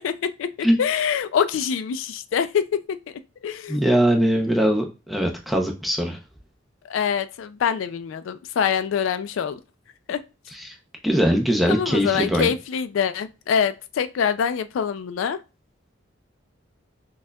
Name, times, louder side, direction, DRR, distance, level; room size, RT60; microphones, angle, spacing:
voice 1, 0.0-3.0 3.4-3.8 6.8-9.6 10.1-10.2 11.7-15.4, left 7 dB, 80° left, 0.3 m, -25 dB
voice 2, 3.7-6.2 10.6-10.7 11.0-12.5, equal, ahead, 0.5 m, -21 dB
6.0 x 2.3 x 2.2 m
head